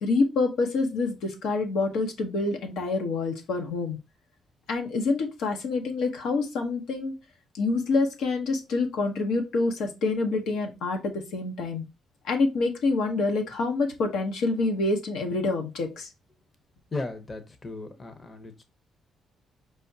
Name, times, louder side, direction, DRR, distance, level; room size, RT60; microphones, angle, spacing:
voice 1, 0.0-4.0 4.7-7.1 7.5-11.8 12.2-16.1, left 3 dB, 80° left, 3 dB, 0.9 m, -27 dB
voice 2, 16.9-18.6, left 3 dB, 30° left, 8 dB, 0.8 m, -36 dB
4.5 x 3.5 x 2.7 m, 0.26 s
cardioid pair, 90°, 0 cm